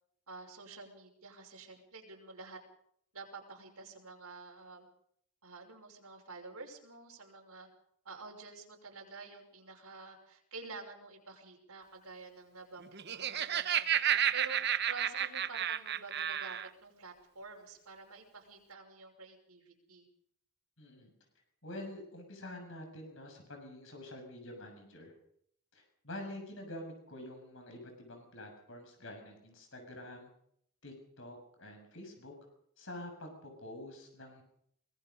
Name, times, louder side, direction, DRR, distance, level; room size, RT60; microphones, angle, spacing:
voice 1, 0.3-2.6 3.1-4.9 5.4-7.7 8.0-14.6 14.9-20.1, right 3 dB, 85° right, 0 dB, 5.7 m, -49 dB
Laughter, 12.8-16.7, right 10 dB, 45° right, 1.0 m, -31 dB
voice 2, 20.8-21.1 21.6-25.1 25.7-30.3 30.8-32.3 32.8-34.4, left 1 dB, 60° left, 4 dB, 6.7 m, -47 dB
24.5 x 20.0 x 5.4 m, 0.67 s
head